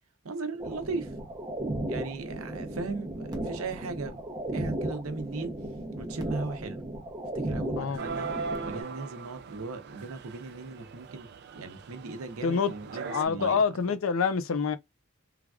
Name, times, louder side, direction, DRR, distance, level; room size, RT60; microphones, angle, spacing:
voice 1, 0.2-1.1 1.9-4.2 4.5-5.6 6.0-6.8 7.3-8.3 8.6-13.6, right 3 dB, 90° right, 0.7 m, -37 dB
sound 1, 0.6-8.8, right 1 dB, 20° right, 0.6 m, -35 dB
sound 2, 8.0-13.3, right 4 dB, 50° right, 0.3 m, -39 dB
voice 2, 13.1-14.8, left 5 dB, 70° left, 0.5 m, -26 dB
3.2 x 2.3 x 2.3 m
head